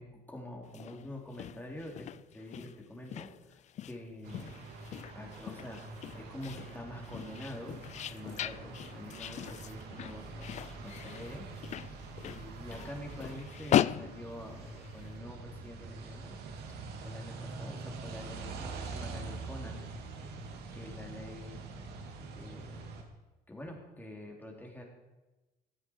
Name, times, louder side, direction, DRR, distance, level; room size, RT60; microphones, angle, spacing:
voice 1, 0.0-2.1 2.3-4.5 5.1-5.8 6.1-7.8 8.1-11.4 12.3-16.3 17.0-19.8 20.7-21.6 22.3-22.9 23.5-24.8, left 1 dB, 10° left, 0 dB, 3.7 m, -46 dB
sound 1, 0.6-15.1, left 11 dB, 45° left, 0.4 m, -38 dB
sound 2, 4.2-23.0, right 4 dB, 75° right, 2.4 m, -45 dB
16.0 x 13.5 x 4.7 m, 1.1 s
cardioid pair, 110°, 17 cm